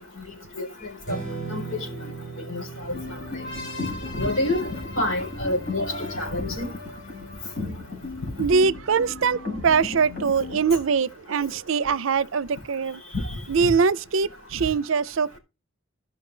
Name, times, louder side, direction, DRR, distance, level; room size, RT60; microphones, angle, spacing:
Strum, 1.0-7.3, right 4 dB, 45° left, 7.6 m, -39 dB
voice 1, 2.5-3.0 3.3-3.4 4.2-6.7 13.3-13.7, left 1 dB, 80° left, 4.2 m, -28 dB
sound 1, 2.9-10.6, left 3 dB, 60° left, 5.0 m, -35 dB
voice 2, 8.4-13.0 13.5-15.4, right 5 dB, 70° right, 0.5 m, -23 dB
13.5 x 5.7 x 3.9 m
head